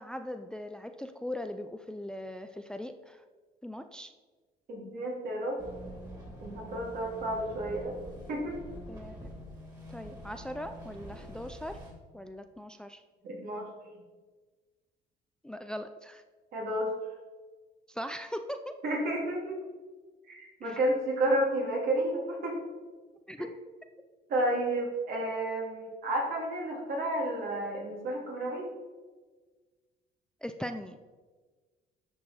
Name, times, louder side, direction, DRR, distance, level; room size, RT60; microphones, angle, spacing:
voice 1, 0.0-3.2 3.6-4.1 8.9-9.3 9.9-11.8 12.1-13.0 15.4-16.2 17.9-18.8 20.6-20.8 23.3-23.6 30.4-31.0, left 1 dB, 5° left, 8 dB, 0.4 m, -40 dB
voice 2, 4.7-5.6 6.4-7.9 8.3-8.5 13.2-13.7 16.5-16.9 18.8-19.6 20.3-22.6 24.3-28.7, right 1 dB, 65° right, -1 dB, 3.1 m, -31 dB
sound 1, 5.6-11.9, equal, 20° right, 3.1 m, -46 dB
11.0 x 6.4 x 4.3 m, 1.4 s
cardioid pair, 110°, 17 cm